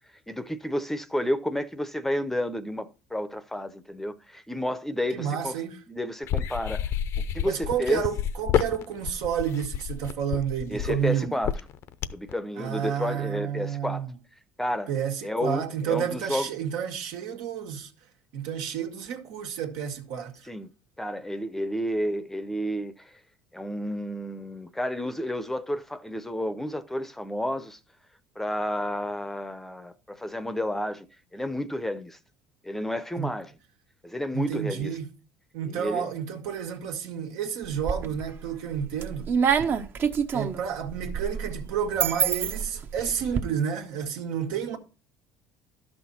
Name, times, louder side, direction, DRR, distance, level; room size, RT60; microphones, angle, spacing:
voice 1, 0.3-5.6 5.9-6.9 7.2-8.0 10.7-11.6 12.1-14.1 14.6-14.9 15.2-16.5 20.4-20.7 21.0-23.1 23.5-27.8 28.4-31.1 31.3-32.2 32.6-33.5 34.0-34.9 35.6-36.1, equal, 5° left, 0.7 m, -31 dB
voice 2, 5.1-5.8 7.4-11.4 12.6-14.1 14.9-17.9 18.3-20.4 33.2-33.3 34.3-35.1 35.5-39.3 40.3-44.8, right 8 dB, 85° right, 1.7 m, -30 dB
sound 1, 6.3-12.3, left 9 dB, 60° left, 0.6 m, -29 dB
sound 2, 37.6-38.3 38.8-43.4, right 7 dB, 40° right, 0.8 m, -27 dB
12.0 x 6.1 x 4.2 m
cardioid pair, 110°, 5 cm